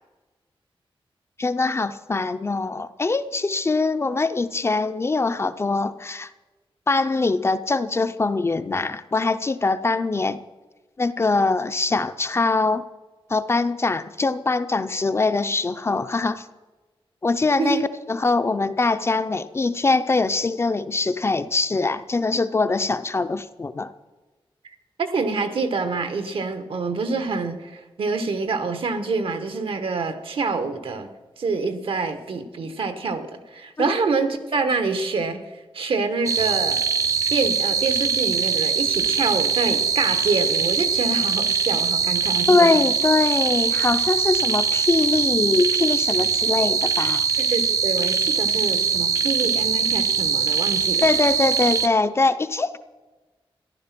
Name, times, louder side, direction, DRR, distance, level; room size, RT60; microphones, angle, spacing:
voice 1, 1.4-6.3 6.9-10.4 11.0-12.8 13.3-16.5 17.2-17.8 18.1-23.9 42.5-47.3 51.0-52.8, left 3 dB, 30° left, 11 dB, 0.5 m, -22 dB
voice 2, 25.0-31.1 31.4-36.8 37.3-42.7 47.4-51.1, right 4 dB, 75° right, 9 dB, 1.2 m, -26 dB
sound 1, 36.3-51.9, right 6 dB, 35° right, 0.5 m, -22 dB
14.0 x 11.0 x 5.9 m, 1.2 s
wide cardioid pair, 175°, 9 cm